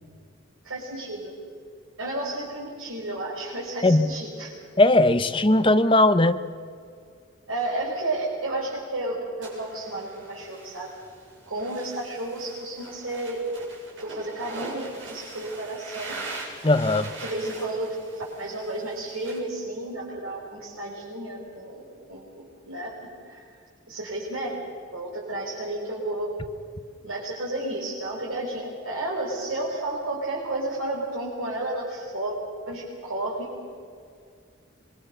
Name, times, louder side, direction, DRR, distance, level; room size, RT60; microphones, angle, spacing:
voice 1, 0.6-1.3 2.0-4.5 7.5-10.9 11.5-13.4 14.0-16.2 17.2-21.8 22.1-22.3 22.7-22.9 23.3-23.5 23.9-24.6 24.9-26.3 27.0-32.4 32.7-33.5, right 2 dB, 85° right, -5 dB, 5.7 m, -32 dB
voice 2, 3.8-4.1 4.8-6.4 16.6-17.1, left 2 dB, 25° left, 10 dB, 0.9 m, -18 dB
sound 1, 9.4-19.4, right 3 dB, 60° right, 7.8 m, -41 dB
25.5 x 23.5 x 6.8 m, 2.2 s
head